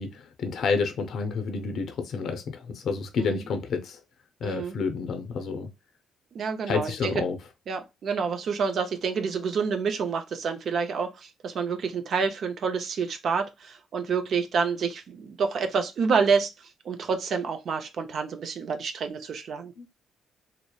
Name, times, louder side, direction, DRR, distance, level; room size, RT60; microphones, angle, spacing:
voice 1, 0.0-4.0 4.4-5.7 6.7-7.4 19.8-19.9, left 5 dB, 65° left, 0.5 m, -29 dB
voice 2, 4.4-4.8 6.3-7.2 7.7-19.7, right 5 dB, 60° right, 0.5 m, -28 dB
2.9 x 2.0 x 2.2 m
cardioid pair, 90°, 0 cm